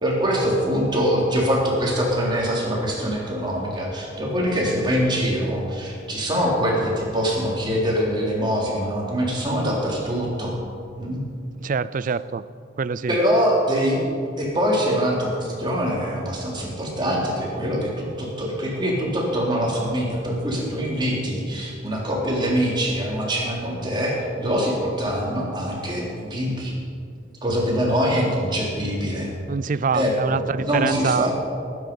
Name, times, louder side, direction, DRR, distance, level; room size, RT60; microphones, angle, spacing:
voice 1, 0.0-10.6 11.0-11.2 13.1-14.0 14.4-26.7 27.4-29.3 29.9-31.3, equal, 25° right, -3 dB, 3.4 m, -24 dB
voice 2, 11.6-12.4 12.8-13.2 29.5-31.3, right 5 dB, 45° right, 17 dB, 0.4 m, -25 dB
19.0 x 9.7 x 5.4 m, 2.4 s
head